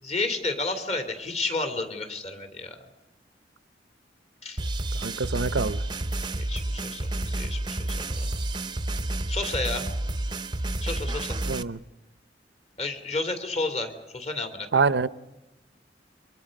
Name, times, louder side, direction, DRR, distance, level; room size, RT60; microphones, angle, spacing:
voice 1, 0.0-2.8 4.4-4.6 6.3-8.3 9.3-9.8 10.8-11.4 12.8-14.7, left 3 dB, 40° left, 6 dB, 2.8 m, -31 dB
sound 1, 4.6-11.6, right 1 dB, 25° right, 0.7 m, -30 dB
voice 2, 4.9-5.8 11.4-11.8 14.7-15.1, right 4 dB, 75° right, 15 dB, 0.7 m, -25 dB
28.5 x 23.5 x 5.3 m, 1.0 s
head